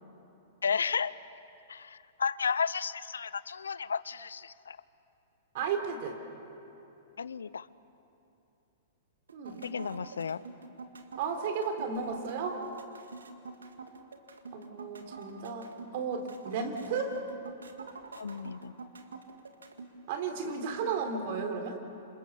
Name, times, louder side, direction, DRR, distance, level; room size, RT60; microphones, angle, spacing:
voice 1, 0.6-1.1 1.7-4.8 7.2-7.7 9.6-10.4 18.1-18.7, left 6 dB, 85° left, 18 dB, 0.6 m, -33 dB
voice 2, 5.5-6.2 9.3-9.8 11.2-12.6 14.5-17.2 20.1-21.8, right 5 dB, 55° right, 5 dB, 3.5 m, -34 dB
sound 1, 9.3-19.9, right 4 dB, 85° right, 1.9 m, -46 dB
27.5 x 27.5 x 7.0 m, 2.8 s
hypercardioid pair, 115°, 0 cm